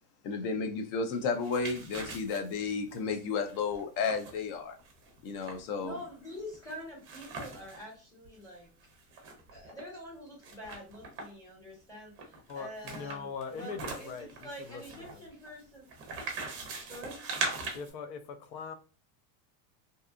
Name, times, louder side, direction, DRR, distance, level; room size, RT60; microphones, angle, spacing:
voice 1, 0.2-4.8 5.2-6.0, left 5 dB, 50° left, 0.6 m, -32 dB
sound 1, 1.2-7.8 8.2-8.3 8.6-9.8 10.4-11.5 12.2-17.9, right 4 dB, 25° right, 0.5 m, -41 dB
voice 2, 5.8-8.7 9.5-15.8 16.8-17.2, equal, 5° left, 1.0 m, -46 dB
voice 3, 12.5-15.3 17.7-18.7, left 5 dB, 90° left, 0.7 m, -41 dB
2.7 x 2.3 x 2.4 m
supercardioid pair, 155°, 48 cm